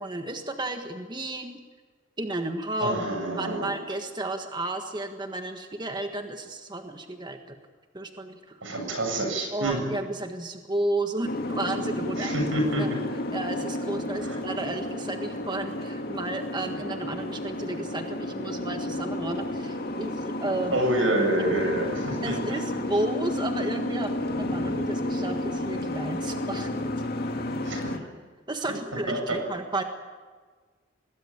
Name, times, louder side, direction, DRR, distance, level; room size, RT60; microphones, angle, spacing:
voice 1, 0.0-1.6 2.2-3.0 3.4-7.6 7.9-8.7 9.5-12.3 12.8-12.9 13.3-20.8 22.2-27.3 28.5-29.8, right 2 dB, 25° right, 5 dB, 1.6 m, -33 dB
voice 2, 2.8-3.7 8.6-9.9 12.2-12.9 14.2-14.4 20.7-22.6 27.6-27.9 28.6-28.8 29.1-29.5, right 1 dB, 90° right, 3 dB, 7.7 m, -27 dB
Boat Water vehicle, 11.2-28.0, left 1 dB, 55° left, 2.1 m, -31 dB
25.0 x 20.0 x 8.8 m, 1.5 s
head